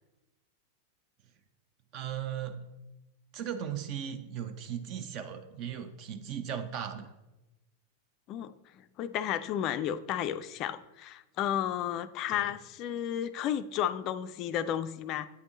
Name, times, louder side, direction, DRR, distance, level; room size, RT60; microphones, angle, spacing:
voice 1, 1.9-2.6 3.3-7.1 12.3-12.5, right 9 dB, 40° right, 8 dB, 0.5 m, -37 dB
voice 2, 9.0-15.3, left 10 dB, 40° left, 12 dB, 0.3 m, -32 dB
8.4 x 3.5 x 3.8 m, 0.99 s
figure-of-eight pair, 90°, 0 cm